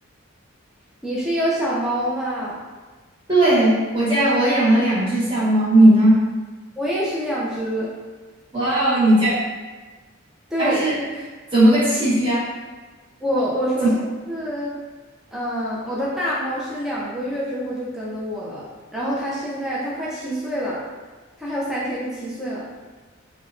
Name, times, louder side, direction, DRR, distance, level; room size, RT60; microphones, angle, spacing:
voice 1, 1.0-2.6 6.8-7.9 10.5-10.8 13.2-14.8 15.3-18.6 18.9-20.8 21.4-22.7, equal, ahead, -7 dB, 0.3 m, -26 dB
voice 2, 3.3-6.2 8.5-9.3 10.6-11.0 11.5-12.4 13.8-13.9, right 1 dB, 25° right, -9 dB, 0.9 m, -17 dB
3.0 x 2.0 x 2.4 m, 1.3 s
head